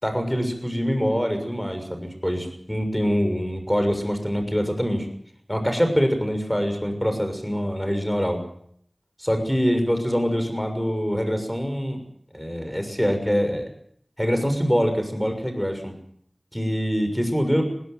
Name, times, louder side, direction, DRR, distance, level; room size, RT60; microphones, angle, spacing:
voice 1, 0.0-5.0 5.5-8.4 9.2-12.0 12.3-13.7 14.2-15.9 16.5-17.7, equal, 5° left, 6 dB, 6.6 m, -24 dB
20.5 x 17.0 x 9.1 m, 0.66 s
wide cardioid pair, 45°, 0 cm